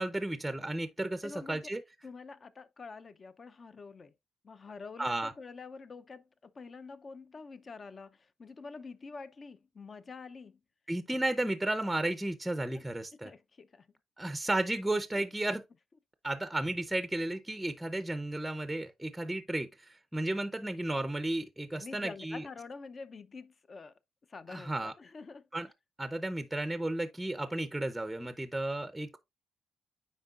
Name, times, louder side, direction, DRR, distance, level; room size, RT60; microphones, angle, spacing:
voice 1, 0.0-1.8 5.0-5.3 10.9-13.3 14.2-15.6 16.2-22.5 24.5-24.9 25.5-25.7 26.0-29.2, right 1 dB, 5° right, 0.6 m, -33 dB
voice 2, 1.2-1.7 2.0-4.1 4.4-10.6 12.7-12.8 13.2-13.9 21.7-23.9 24.3-25.5, left 4 dB, 40° left, 0.6 m, -47 dB
9.2 x 4.4 x 2.4 m
cardioid pair, 90°, 0 cm